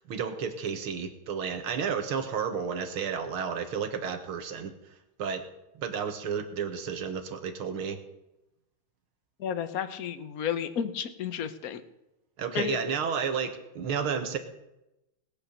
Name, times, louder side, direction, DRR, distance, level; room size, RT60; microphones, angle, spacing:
voice 1, 0.0-4.7 5.2-5.4 5.8-8.0 12.4-14.4, right 6 dB, 75° right, 7 dB, 2.2 m, -32 dB
voice 2, 9.4-11.8 12.5-12.8, left 8 dB, 50° left, 10 dB, 1.2 m, -32 dB
19.0 x 8.7 x 6.7 m, 0.91 s
omnidirectional pair, 2.4 m